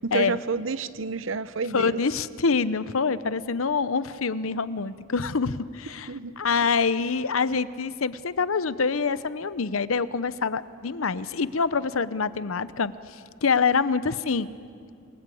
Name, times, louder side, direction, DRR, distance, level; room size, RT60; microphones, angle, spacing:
voice 1, 0.0-2.0 6.1-6.7, right 4 dB, 70° right, 15 dB, 0.8 m, -30 dB
voice 2, 1.7-6.1 6.4-12.9 13.4-14.5, left 5 dB, 90° left, 15 dB, 0.8 m, -25 dB
29.0 x 22.0 x 8.5 m, 2.3 s
head